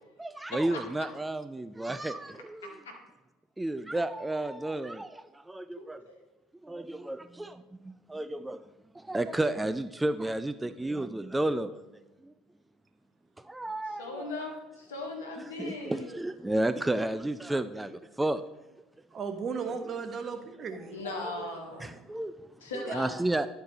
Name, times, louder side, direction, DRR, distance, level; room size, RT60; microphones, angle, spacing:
voice 1, 0.2-2.8 3.6-6.0 6.6-8.6 8.9-11.8 12.2-12.3 13.4-14.4 15.6-18.4 20.0-20.1 21.0-21.5 21.8-22.3 22.7-23.5, right 1 dB, 10° right, 0.3 m, -32 dB
voice 2, 0.7-1.1 2.6-2.9 5.8-6.2 14.0-16.1 20.9-22.0 22.6-23.2, left 2 dB, 80° left, 1.3 m, -39 dB
voice 3, 19.1-21.0 22.7-22.9, right 5 dB, 40° right, 1.0 m, -35 dB
11.0 x 4.4 x 3.9 m
figure-of-eight pair, 65°, 0 cm